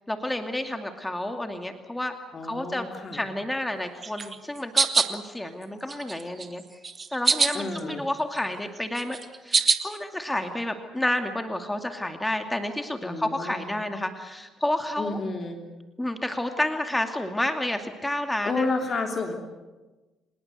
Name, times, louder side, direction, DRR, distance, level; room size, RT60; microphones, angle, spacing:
voice 1, 0.1-2.1 2.4-2.9 3.1-6.8 7.1-9.2 9.4-15.2 16.0-18.7, left 1 dB, 10° left, 6 dB, 2.5 m, -30 dB
voice 2, 2.3-3.2 7.5-8.0 13.0-13.7 15.0-15.6 18.4-19.3, left 3 dB, 45° left, 3 dB, 3.2 m, -30 dB
sound 1, 4.0-5.1 5.6-6.5 6.8-7.9 8.2-10.0, right 4 dB, 35° right, 1.8 m, -24 dB
26.0 x 20.5 x 8.1 m, 1.2 s
hypercardioid pair, 50°, 0 cm